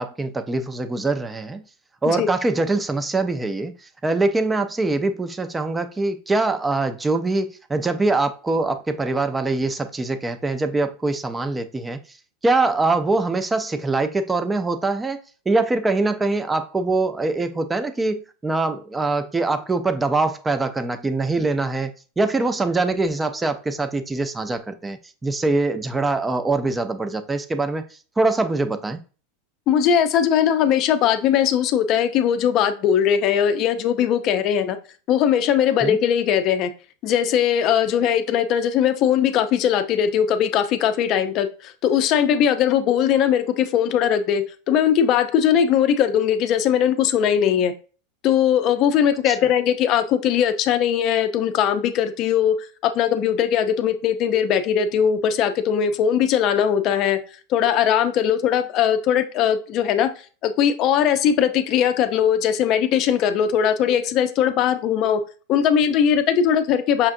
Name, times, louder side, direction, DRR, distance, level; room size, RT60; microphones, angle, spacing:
voice 1, 0.0-1.6 2.0-12.0 12.4-15.2 15.5-27.8 28.2-29.0 35.8-36.0 49.3-49.4, right 3 dB, 15° right, 0.5 m, -23 dB
voice 2, 29.7-34.8 35.1-36.7 37.0-47.7 48.2-57.2 57.5-60.1 60.4-65.2 65.5-67.1, left 9 dB, 45° left, 0.5 m, -20 dB
5.7 x 2.4 x 2.6 m
hypercardioid pair, 110°, 0 cm